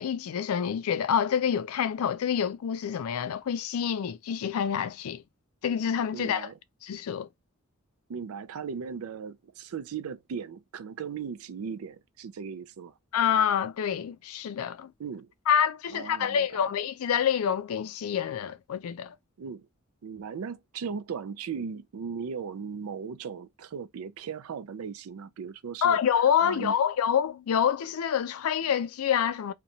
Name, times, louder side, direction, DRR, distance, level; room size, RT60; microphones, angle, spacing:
voice 1, 0.0-5.2 5.6-6.5 6.8-7.3 13.1-14.9 15.5-19.1 25.8-29.5, left 8 dB, 80° left, 0.4 m, -27 dB
voice 2, 6.1-6.6 8.1-12.9 15.0-15.3 15.9-16.6 19.4-19.7 20.0-26.0 26.4-26.7, right 6 dB, 80° right, 0.4 m, -37 dB
2.8 x 2.2 x 2.6 m
head